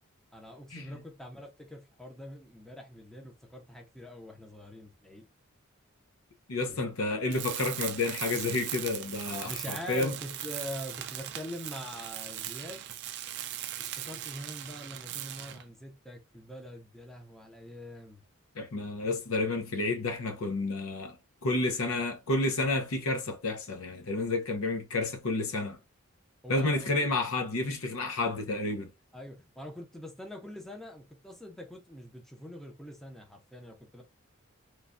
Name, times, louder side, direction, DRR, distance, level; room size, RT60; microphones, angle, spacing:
voice 1, 0.3-5.3 6.7-6.8 7.1-7.4 9.5-12.8 13.8-18.2 26.4-27.1 29.1-34.0, left 1 dB, ahead, 0.6 m, -44 dB
voice 2, 6.5-10.1 18.6-21.2 21.4-25.8 26.5-28.9, left 2 dB, 70° left, 0.6 m, -30 dB
Tools, 7.3-15.7, right 12 dB, 55° right, 0.4 m, -39 dB
3.1 x 2.2 x 2.4 m
head